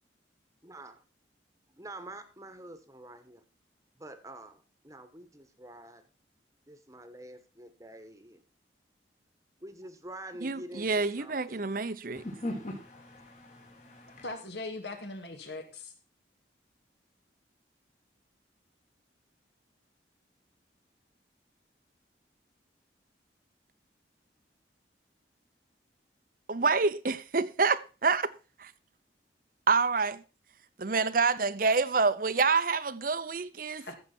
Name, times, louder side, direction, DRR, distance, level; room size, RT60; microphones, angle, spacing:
voice 1, 0.6-1.0 1.7-3.4 4.0-6.0 6.7-8.4 9.6-11.6, right 1 dB, 20° right, 1.2 m, -47 dB
voice 2, 10.4-12.2 26.5-28.3 28.6-28.7 29.7-30.2 30.8-33.9, right 4 dB, 50° right, 0.7 m, -27 dB
voice 3, 12.1-14.3, left 1 dB, 40° left, 2.0 m, -40 dB
voice 4, 14.2-15.9 33.8-34.0, left 2 dB, 70° left, 2.5 m, -40 dB
14.0 x 7.5 x 4.4 m
head